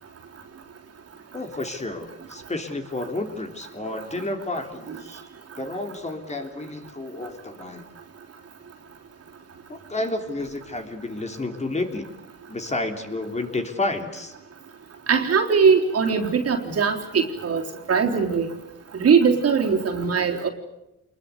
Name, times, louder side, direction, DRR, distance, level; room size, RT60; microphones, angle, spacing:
voice 1, 1.3-5.2 5.6-7.8 9.7-12.1 12.5-14.3, left 2 dB, 20° left, 5 dB, 3.3 m, -31 dB
voice 2, 15.1-17.6 17.9-18.5 18.9-20.5, right 6 dB, 55° right, 2 dB, 3.8 m, -20 dB
27.0 x 21.5 x 8.2 m, 0.89 s
cardioid pair, 90°, 30 cm